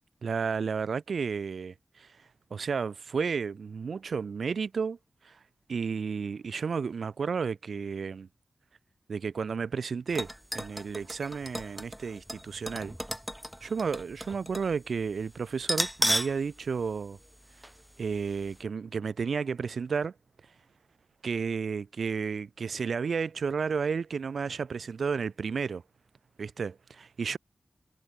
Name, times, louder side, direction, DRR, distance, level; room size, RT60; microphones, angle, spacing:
voice 1, 0.2-2.1 2.5-5.0 5.2-5.4 5.7-8.3 9.1-12.9 13.6-17.2 18.0-20.1 21.2-25.8 26.4-27.4, right 5 dB, 90° right, 0.6 m, -32 dB
sound 1, 10.1-14.7 15.0-15.1 15.6-16.4 16.8-16.9 17.6-17.8 18.2-18.3, equal, 5° right, 1.1 m, -34 dB
wide cardioid pair, 65°, 0 cm